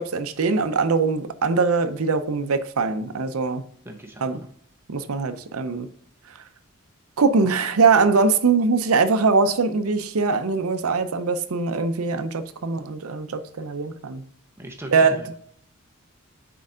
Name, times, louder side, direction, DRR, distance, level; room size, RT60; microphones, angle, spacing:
voice 1, 0.0-3.6 4.2-4.4 4.9-5.9 6.3-6.4 7.2-14.2 14.9-15.2, right 4 dB, 80° right, 0.6 m, -22 dB
voice 2, 3.8-4.5 14.6-15.3, right 1 dB, 10° right, 0.7 m, -39 dB
6.5 x 4.6 x 3.7 m
head